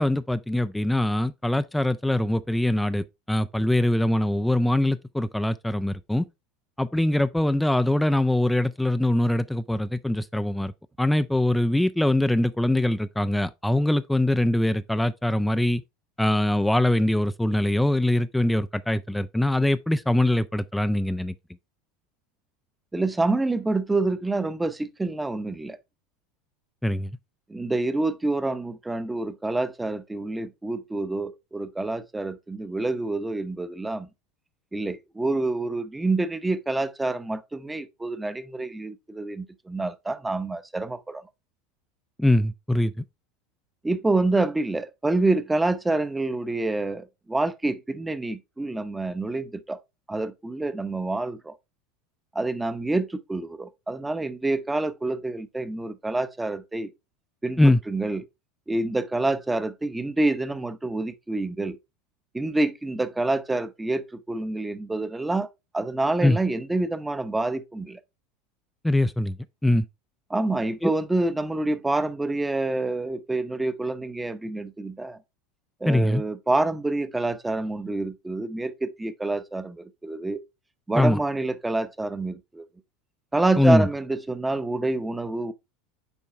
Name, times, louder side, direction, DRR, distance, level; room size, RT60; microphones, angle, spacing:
voice 1, 0.0-6.3 6.8-10.7 11.0-15.8 16.2-21.3 26.8-27.1 42.2-42.9 57.6-57.8 66.2-66.4 68.8-69.4 69.6-69.8 70.8-70.9 75.9-76.2 81.0-81.2 83.6-83.9, left 1 dB, 5° left, 0.4 m, -22 dB
voice 2, 22.9-25.8 27.5-34.1 34.7-41.2 43.8-49.8 50.1-51.5 52.3-56.9 57.4-58.2 58.7-61.8 62.3-65.5 65.7-68.0 70.3-75.2 75.8-80.4 80.9-82.7 83.3-85.5, right 2 dB, 10° right, 0.8 m, -27 dB
7.1 x 4.6 x 3.4 m
hypercardioid pair, 85°, 0 cm